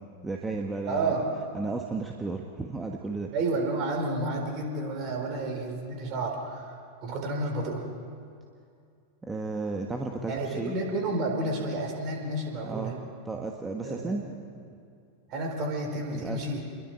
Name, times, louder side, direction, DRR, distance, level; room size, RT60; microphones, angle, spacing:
voice 1, 0.2-1.2 1.5-3.3 9.2-10.8 12.6-13.0 13.2-14.4 16.1-16.4, right 3 dB, 10° right, 2 dB, 1.4 m, -33 dB
voice 2, 0.9-1.3 3.3-6.8 7.0-7.8 10.3-12.9 13.8-14.2 15.3-16.6, right 2 dB, 40° right, 2 dB, 4.4 m, -30 dB
29.0 x 22.0 x 4.7 m, 2.4 s
figure-of-eight pair, 90°, 0 cm